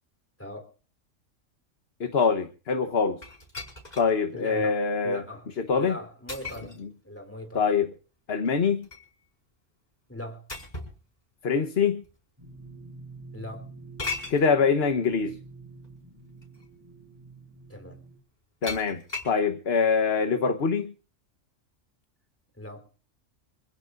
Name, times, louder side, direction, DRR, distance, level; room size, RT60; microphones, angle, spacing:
voice 1, 0.4-0.7 4.3-5.5 5.8-6.8 7.0-7.7 10.1-10.4 13.3-13.7 17.7-18.0 22.6-22.9, left 1 dB, 10° left, 3.6 m, -40 dB
voice 2, 2.0-3.2 4.0-5.2 5.7-5.9 7.5-7.9 8.3-8.9 11.4-12.0 14.3-15.4 18.6-20.9, left 5 dB, 55° left, 1.3 m, -24 dB
sound 1, 3.2-4.1 4.7-4.8 6.3-6.8 8.4-9.1 10.5-11.0 12.0-12.1 14.0-14.4 15.8-15.9 16.4-16.7 18.6-19.4, left 3 dB, 35° left, 5.6 m, -37 dB
sound 2, 12.4-18.2, right 3 dB, 15° right, 7.4 m, -47 dB
26.5 x 16.0 x 2.6 m
omnidirectional pair, 1.3 m